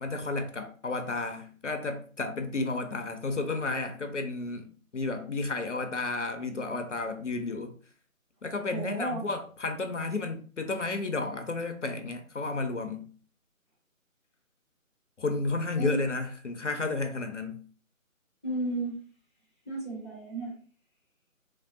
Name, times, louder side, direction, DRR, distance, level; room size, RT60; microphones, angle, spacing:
voice 1, 0.0-4.7 4.9-7.7 8.4-13.1 15.2-17.6, left 3 dB, 60° left, 0.5 m, -32 dB
voice 2, 8.7-9.2 15.8-16.0 18.4-18.9 19.7-20.5, right 2 dB, 20° right, 0.8 m, -33 dB
3.1 x 2.7 x 2.4 m
figure-of-eight pair, 155°, 42 cm